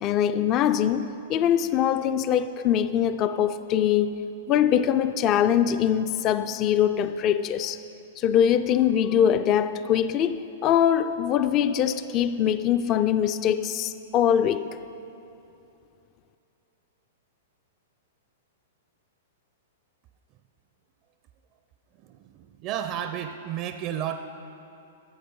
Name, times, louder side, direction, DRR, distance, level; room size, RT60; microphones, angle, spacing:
voice 1, 0.0-4.2 4.5-7.8 8.2-14.7, left 9 dB, 35° left, 0.4 m, -23 dB
voice 2, 22.0-24.2, right 10 dB, 40° right, 0.4 m, -32 dB
12.0 x 7.9 x 5.4 m
hypercardioid pair, 115°, 0 cm